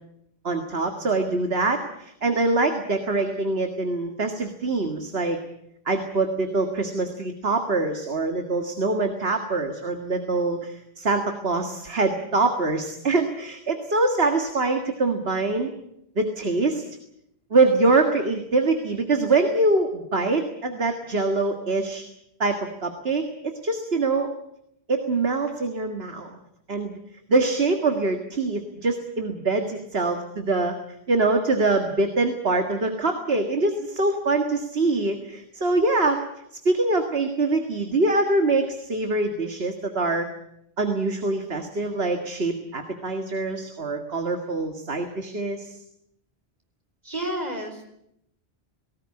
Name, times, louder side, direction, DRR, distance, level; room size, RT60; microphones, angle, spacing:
voice 1, 0.4-5.4 5.9-15.7 16.2-16.8 17.5-22.0 22.4-24.3 24.9-26.3 26.7-27.0 27.3-30.7 31.1-36.2 36.7-40.3 40.8-45.7, right 3 dB, 75° right, 5 dB, 2.1 m, -24 dB
voice 2, 47.0-47.9, right 1 dB, 40° right, 3 dB, 4.6 m, -31 dB
19.0 x 18.5 x 9.7 m, 0.76 s
omnidirectional pair, 1.0 m